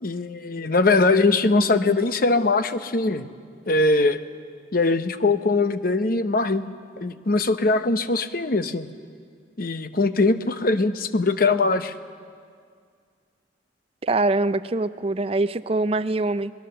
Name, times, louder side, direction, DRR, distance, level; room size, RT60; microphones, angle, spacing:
voice 1, 0.0-3.3 3.7-4.2 4.7-6.6 7.0-8.9 9.6-11.9, left 3 dB, 50° left, 10 dB, 0.8 m, -21 dB
voice 2, 14.0-16.5, right 2 dB, 30° right, 14 dB, 0.5 m, -23 dB
25.5 x 20.0 x 6.8 m, 2.1 s
head